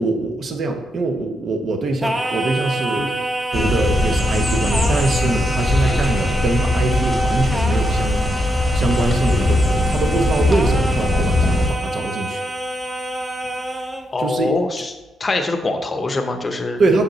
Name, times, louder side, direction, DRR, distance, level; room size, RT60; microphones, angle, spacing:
voice 1, 0.0-3.1 3.5-8.2 8.7-12.4 14.2-14.5 16.8-17.0, right 2 dB, 50° right, 4 dB, 0.9 m, -23 dB
Singing, 2.0-14.1, right 1 dB, 15° right, 0.6 m, -26 dB
sound 1, 3.5-11.7, left 1 dB, 15° left, 1.1 m, -20 dB
voice 2, 14.1-14.9 15.2-16.8, left 2 dB, 30° left, 5 dB, 0.8 m, -23 dB
6.5 x 5.0 x 3.1 m, 1.1 s
cardioid pair, 90°, 0 cm